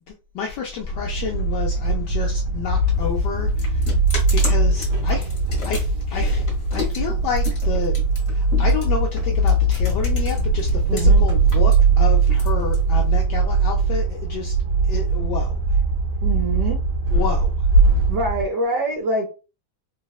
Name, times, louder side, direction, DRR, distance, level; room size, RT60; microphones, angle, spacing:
voice 1, 0.1-3.8 4.3-5.3 5.6-8.0 8.3-14.5 14.9-15.6 17.1-17.5, left 6 dB, 75° left, 1.0 m, -30 dB
sound 1, 0.8-18.5, right 3 dB, 90° right, 1.9 m, -20 dB
sound 2, 2.8-11.0 11.3-13.2, left 4 dB, 45° left, 1.3 m, -33 dB
voice 2, 10.9-11.2 16.2-16.8 18.1-19.3, right 2 dB, 70° right, 1.1 m, -24 dB
3.9 x 2.1 x 2.3 m
omnidirectional pair, 2.3 m